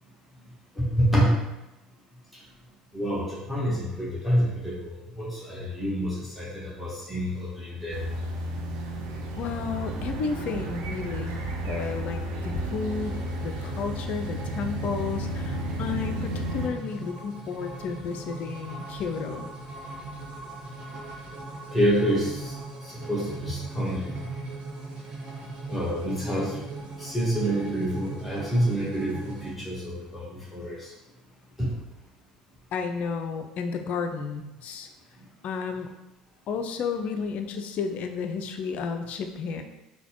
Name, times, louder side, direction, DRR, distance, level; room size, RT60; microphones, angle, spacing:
voice 1, 0.8-1.4 2.9-8.0 21.7-22.5 22.8-24.2 25.7-26.5 27.0-30.9 31.6-31.7, equal, 5° right, -8 dB, 1.1 m, -27 dB
sound 1, 7.9-16.7, right 1 dB, 60° right, 0.5 m, -32 dB
voice 2, 9.4-19.5 32.7-34.9 35.4-35.9 36.5-39.6, left 5 dB, 45° left, 6 dB, 0.3 m, -32 dB
sound 2, 12.9-29.5, right 3 dB, 35° right, 0.8 m, -40 dB
3.8 x 2.1 x 2.9 m, 0.96 s
figure-of-eight pair, 60°, 3 cm